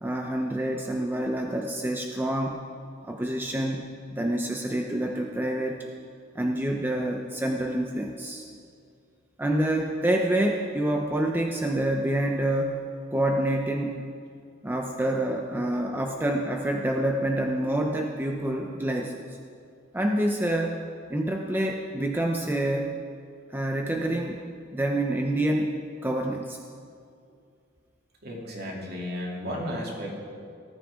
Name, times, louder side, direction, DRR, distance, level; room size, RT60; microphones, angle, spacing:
voice 1, 0.0-2.7 3.0-5.9 6.3-8.4 9.4-14.0 14.6-19.4 19.9-20.8 21.1-23.0 23.5-24.4 24.7-25.7 26.0-26.6, right 1 dB, 10° right, 2 dB, 0.6 m, -27 dB
voice 2, 28.2-30.1, equal, 55° right, -2 dB, 2.8 m, -33 dB
18.5 x 13.5 x 3.7 m, 2.3 s
head